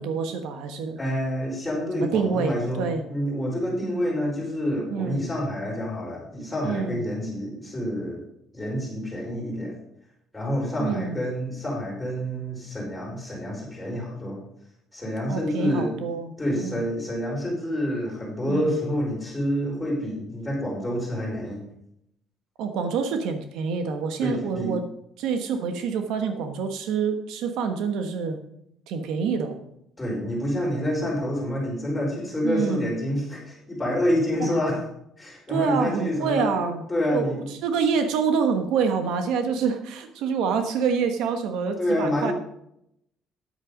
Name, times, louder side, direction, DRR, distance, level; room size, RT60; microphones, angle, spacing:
voice 1, 0.0-1.0 2.0-3.0 4.9-5.2 6.6-7.0 10.8-11.2 15.3-16.8 18.5-18.8 22.6-24.8 25.2-28.4 28.9-29.6 32.4-32.9 34.4-34.5 35.5-36.8 37.1-42.3, right 6 dB, 80° right, 7 dB, 1.2 m, -27 dB
voice 2, 1.0-8.2 8.5-9.7 10.3-14.4 14.9-15.9 16.4-21.7 24.2-24.8 30.0-34.8 35.2-37.5 41.8-42.3, equal, 5° left, -4 dB, 4.9 m, -28 dB
9.8 x 8.9 x 5.2 m, 0.76 s
cardioid pair, 155°, 0 cm